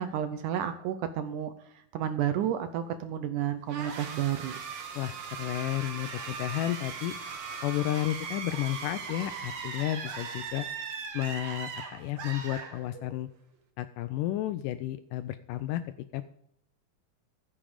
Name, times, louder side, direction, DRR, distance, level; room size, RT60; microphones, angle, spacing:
voice 1, 0.0-1.5 1.9-4.6, right 10 dB, 75° right, 10 dB, 1.9 m, -31 dB
sound 1, 3.7-13.2, right 5 dB, 55° right, 1.9 m, -39 dB
voice 2, 5.0-7.1 7.6-10.7 11.1-13.3 13.8-15.8 16.1-16.3, left 14 dB, 80° left, 11 dB, 1.9 m, -32 dB
15.0 x 7.4 x 5.0 m, 0.72 s
omnidirectional pair, 4.2 m